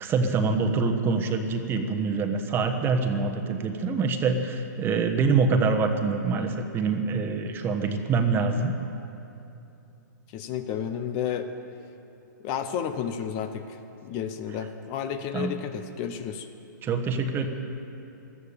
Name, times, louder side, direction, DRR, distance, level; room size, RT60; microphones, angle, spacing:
voice 1, 0.0-8.7 15.3-15.5 16.8-17.5, right 4 dB, 20° right, 5 dB, 1.1 m, -25 dB
voice 2, 10.3-11.5 12.4-16.5, left 8 dB, 35° left, 9 dB, 0.9 m, -32 dB
16.0 x 13.0 x 6.8 m, 2.8 s
hypercardioid pair, 140°, 11 cm